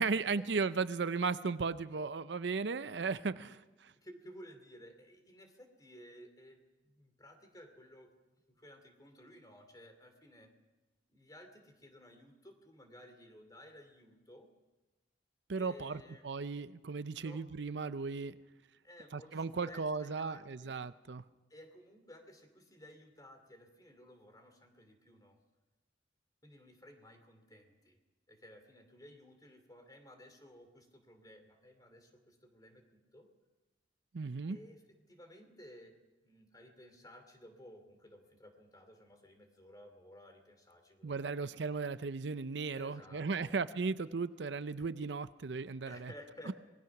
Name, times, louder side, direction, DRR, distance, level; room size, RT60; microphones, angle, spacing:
voice 1, 0.0-3.9 15.5-18.4 19.1-21.2 34.1-34.6 41.0-46.1 46.5-46.6, right 4 dB, 70° right, 14 dB, 0.6 m, -36 dB
voice 2, 3.9-8.1 8.5-10.5 11.1-14.5 15.6-16.3 17.2-17.4 18.8-20.8 21.5-25.4 26.4-28.0 28.3-33.3 34.5-34.8 35.1-36.0 36.2-41.5 42.7-43.6 45.8-46.5, left 1 dB, 20° left, 6 dB, 2.7 m, -56 dB
25.5 x 20.0 x 6.0 m, 1.1 s
head